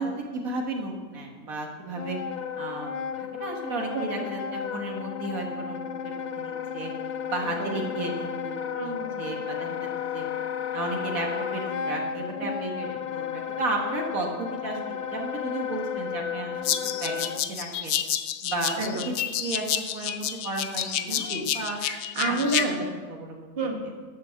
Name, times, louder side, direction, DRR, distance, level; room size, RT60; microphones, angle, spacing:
voice 1, 0.0-2.2 2.6-6.9 7.3-10.3 10.7-18.0 18.4-19.1 19.4-21.8 22.1-22.4 22.8-23.5, right 2 dB, 80° right, 1 dB, 1.9 m, -34 dB
Wind instrument woodwind instrument, 1.9-17.4, left 7 dB, 65° left, 0.4 m, -33 dB
voice 2, 3.9-4.3 7.6-7.8 8.7-9.2 18.8-19.1 21.1-21.5 21.8-22.9 23.6-23.9, right 2 dB, 45° right, 1 dB, 1.7 m, -30 dB
sound 1, 16.6-22.6, left 10 dB, 80° left, 1.1 m, -29 dB
12.5 x 7.5 x 6.9 m, 1.4 s
omnidirectional pair, 1.5 m